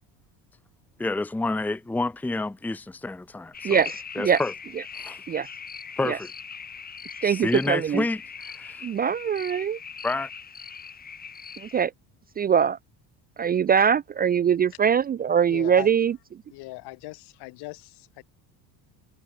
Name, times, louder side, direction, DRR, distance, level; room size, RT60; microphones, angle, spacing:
voice 1, 1.0-3.9 4.1-4.5 5.0-5.2 6.0-6.3 7.2-8.8 10.0-10.3, left 2 dB, 5° left, 0.9 m, -29 dB
sound 1, 3.5-11.9, left 6 dB, 20° left, 2.1 m, -40 dB
voice 2, 3.6-4.4 5.3-5.5 6.1-6.2 7.2-8.0 8.8-9.8 11.6-11.9 12.4-12.8 13.4-16.1, right 7 dB, 25° right, 0.4 m, -22 dB
voice 3, 15.5-15.9 16.5-18.2, left 21 dB, 70° left, 3.0 m, -39 dB
cardioid pair, 145°, 41 cm